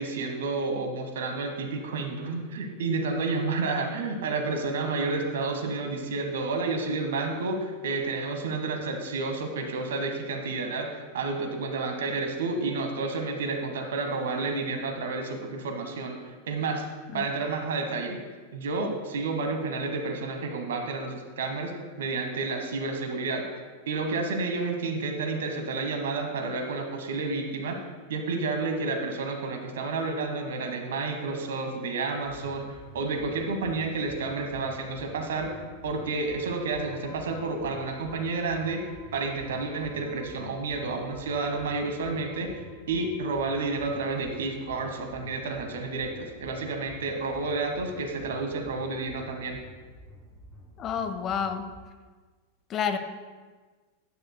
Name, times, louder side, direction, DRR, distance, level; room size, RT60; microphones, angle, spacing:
voice 1, 0.0-16.8 17.1-18.2 18.5-21.7 22.0-23.4 23.9-27.8 28.1-38.8 39.1-42.6 42.9-49.6, right 3 dB, 60° right, 5 dB, 1.2 m, -30 dB
sound 1, 32.2-51.8, equal, ahead, 2.1 m, -50 dB
voice 2, 50.8-51.7 52.7-53.0, left 7 dB, 30° left, 9 dB, 0.6 m, -29 dB
12.0 x 9.3 x 2.2 m, 1.4 s
figure-of-eight pair, 90°, 0 cm